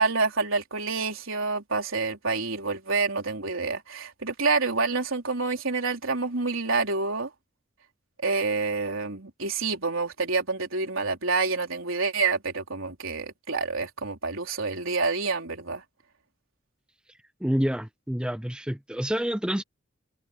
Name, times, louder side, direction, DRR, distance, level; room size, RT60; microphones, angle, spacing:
voice 1, 0.0-7.3 8.2-15.8, right 4 dB, 85° right, 3.9 m, -27 dB
voice 2, 17.4-19.6, equal, 5° right, 0.7 m, -28 dB
head